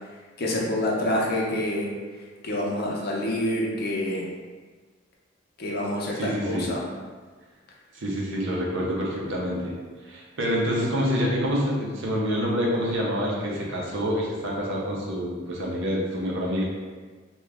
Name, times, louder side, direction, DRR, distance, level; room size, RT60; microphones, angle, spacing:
voice 1, 0.4-1.9 2.4-4.3 5.6-6.9, left 1 dB, 50° left, -3 dB, 0.6 m, -27 dB
voice 2, 6.1-6.7 7.9-9.7 10.1-16.6, equal, 65° right, -3 dB, 0.7 m, -27 dB
2.9 x 2.2 x 3.4 m, 1.4 s
head